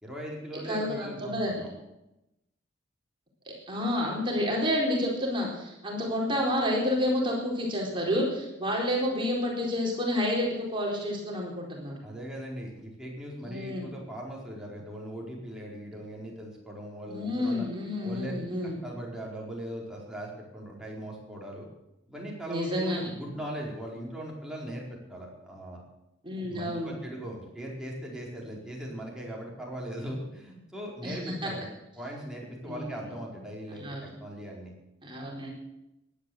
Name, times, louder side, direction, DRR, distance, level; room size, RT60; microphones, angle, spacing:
voice 1, 0.0-1.7 12.0-17.7 18.0-21.7 22.1-25.8 26.4-31.7 32.0-34.7, right 1 dB, 5° right, -3 dB, 4.6 m, -39 dB
voice 2, 0.7-1.6 3.7-11.9 13.5-13.9 17.1-18.8 22.5-23.1 26.2-27.0 31.0-31.5 32.6-32.9 33.8-34.1 35.0-35.5, left 1 dB, 25° right, -2 dB, 4.3 m, -29 dB
16.0 x 11.0 x 8.0 m, 0.91 s
head